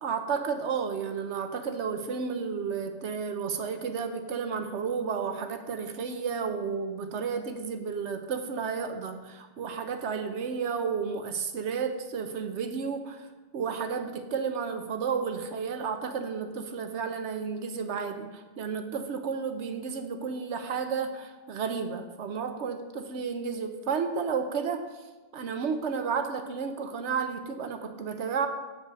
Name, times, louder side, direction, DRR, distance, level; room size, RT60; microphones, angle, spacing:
voice 1, 0.0-13.3 13.5-24.9 25.3-28.5, right 6 dB, 75° right, 7 dB, 1.0 m, -32 dB
8.2 x 4.7 x 6.6 m, 1.2 s
omnidirectional pair, 1.2 m